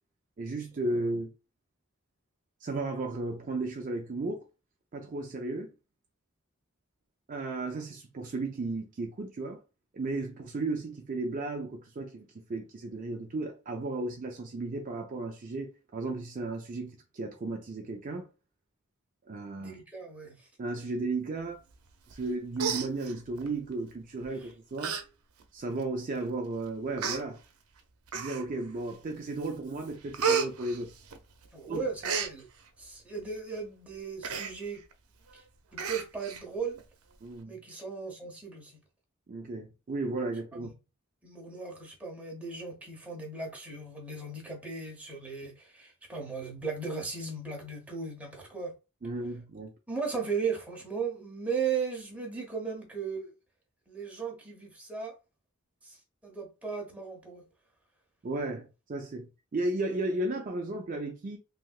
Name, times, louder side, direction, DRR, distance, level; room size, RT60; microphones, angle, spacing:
voice 1, 0.4-1.3 2.6-4.4 4.9-5.7 7.3-9.6 9.9-18.3 19.3-19.7 20.6-21.6 22.1-25.0 25.5-27.4 28.1-30.9 31.7-31.8 37.2-37.6 39.3-40.7 49.0-49.7 58.2-61.4, right 2 dB, 40° right, 0.4 m, -34 dB
voice 2, 19.6-20.5 24.4-24.5 31.5-32.5 32.8-34.8 35.7-36.8 37.5-38.8 40.5-40.7 41.2-48.7 49.9-53.3 53.9-55.1 55.8-56.0 56.2-57.4, right 5 dB, 5° right, 0.9 m, -36 dB
Human voice, 22.1-22.3 22.6-23.5 24.2-24.4 24.8-25.0 25.4-25.5 26.3-26.4 27.0-27.2 28.1-28.6 29.1-29.5 29.8-31.5 31.7-32.3 34.2-34.5 34.9-35.0 35.3-35.4 35.8-36.4 36.8-36.9, right 6 dB, 85° right, 0.6 m, -32 dB
3.3 x 2.7 x 2.4 m
head